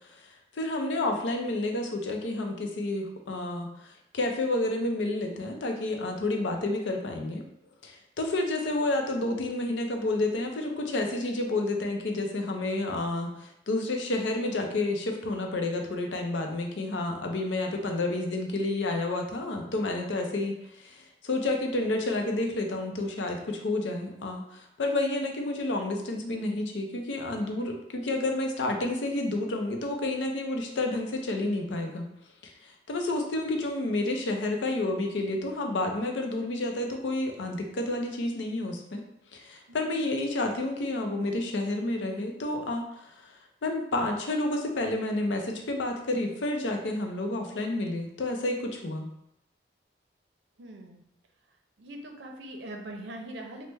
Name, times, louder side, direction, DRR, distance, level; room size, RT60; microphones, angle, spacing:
voice 1, 0.1-7.4 7.8-32.0 32.4-39.0 39.3-43.1 43.6-49.1, left 2 dB, 80° left, 3 dB, 0.5 m, -30 dB
voice 2, 39.7-40.1 50.6-51.0 51.8-53.7, right 1 dB, 75° right, 3 dB, 0.5 m, -42 dB
3.1 x 2.1 x 3.3 m, 0.81 s
head